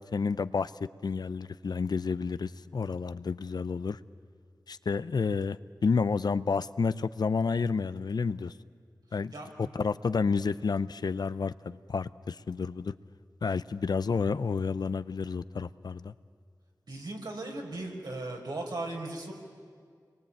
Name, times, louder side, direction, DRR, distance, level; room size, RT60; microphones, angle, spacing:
voice 1, 0.1-0.7 1.0-4.0 4.7-5.6 5.8-8.5 9.1-9.3 9.6-12.9 13.4-16.1, left 5 dB, 70° left, 14 dB, 0.6 m, -30 dB
voice 2, 9.3-9.7 16.9-19.3, right 2 dB, 75° right, 0 dB, 5.0 m, -37 dB
28.0 x 22.0 x 8.7 m, 2.1 s
cardioid pair, 50°, 7 cm